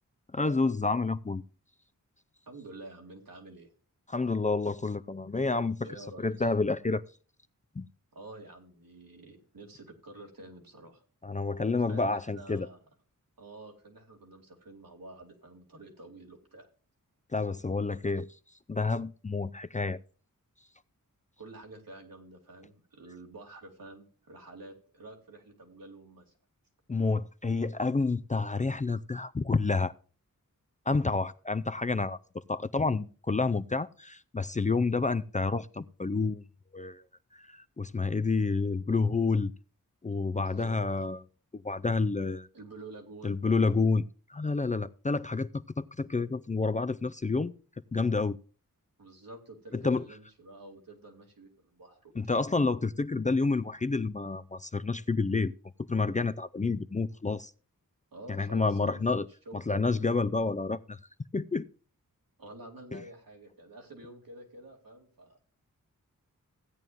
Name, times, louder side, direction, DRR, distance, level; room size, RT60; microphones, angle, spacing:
voice 1, 0.3-1.4 4.1-5.9 6.2-7.0 7.8-7.9 11.2-12.7 17.3-18.3 18.7-20.0 26.9-29.9 30.9-32.2 32.5-36.4 36.7-37.0 37.4-39.5 40.0-41.2 41.5-42.5 43.2-44.0 44.3-47.5 47.9-48.4 49.7-50.0 52.2-55.5 55.9-57.5 58.3-59.3 59.5-61.0 61.3-61.6 62.9-63.0, left 3 dB, 20° left, 0.4 m, -29 dB
voice 2, 2.5-3.7 5.8-6.5 8.1-11.0 11.9-12.8 13.4-16.7 21.4-26.3 40.4-40.8 42.5-43.4 49.0-52.4 58.1-59.9 62.4-65.4, right 2 dB, 80° right, 2.8 m, -49 dB
16.0 x 9.2 x 2.6 m
wide cardioid pair, 70°, 34 cm